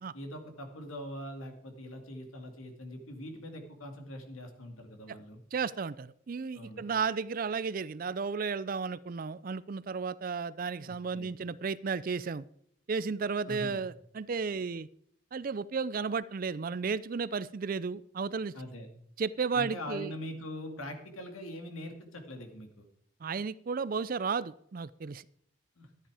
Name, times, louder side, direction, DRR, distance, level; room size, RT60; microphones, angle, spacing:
voice 1, 0.1-5.4 6.5-6.8 10.9-11.3 13.5-13.8 18.5-18.9 19.5-22.9 25.8-25.9, left 1 dB, 85° left, 5 dB, 2.3 m, -42 dB
voice 2, 5.5-12.4 12.9-14.9 15.3-18.5 19.2-20.1 23.2-25.3, right 5 dB, 45° right, 19 dB, 0.4 m, -33 dB
13.0 x 10.0 x 4.8 m, 0.67 s
head